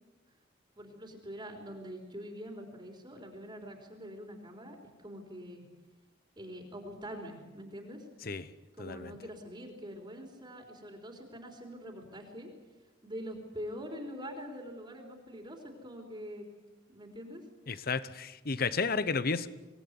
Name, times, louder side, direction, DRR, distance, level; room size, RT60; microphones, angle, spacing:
voice 1, 0.8-5.6 6.4-8.0 8.7-12.5 13.0-16.5 16.9-17.4, equal, 25° right, 2 dB, 3.7 m, -44 dB
voice 2, 8.8-9.1 17.7-19.5, left 4 dB, 55° left, 15 dB, 1.0 m, -32 dB
25.0 x 18.5 x 9.6 m, 1.2 s
head